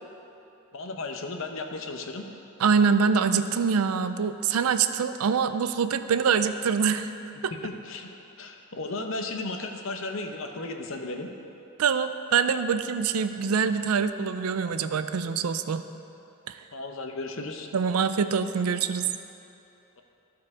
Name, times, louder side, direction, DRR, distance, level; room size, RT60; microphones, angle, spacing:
voice 1, 0.7-2.2 7.5-11.3 16.7-17.7, left 2 dB, 65° left, 4 dB, 0.7 m, -35 dB
voice 2, 2.6-7.1 7.4-7.5 11.8-15.8 16.5-16.6 17.7-19.1, right 6 dB, 90° right, 11 dB, 0.4 m, -24 dB
14.0 x 4.7 x 4.8 m, 2.8 s
head